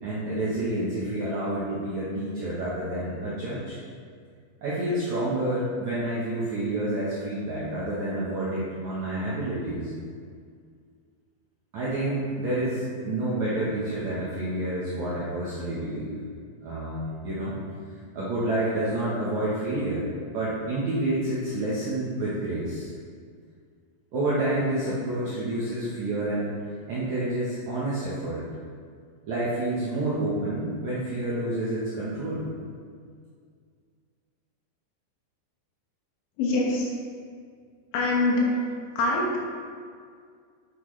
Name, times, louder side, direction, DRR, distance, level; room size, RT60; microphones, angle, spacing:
voice 1, 0.0-3.8 4.6-9.9 11.7-16.2 16.6-17.6 18.1-20.1 20.3-22.9 24.1-26.5 26.9-28.5 29.3-32.5, right 1 dB, 75° right, -8 dB, 1.7 m, -29 dB
voice 2, 36.4-36.9 37.9-38.5 39.0-39.4, left 2 dB, 85° left, -3 dB, 3.8 m, -24 dB
8.4 x 7.8 x 3.2 m, 2.1 s
omnidirectional pair, 5.2 m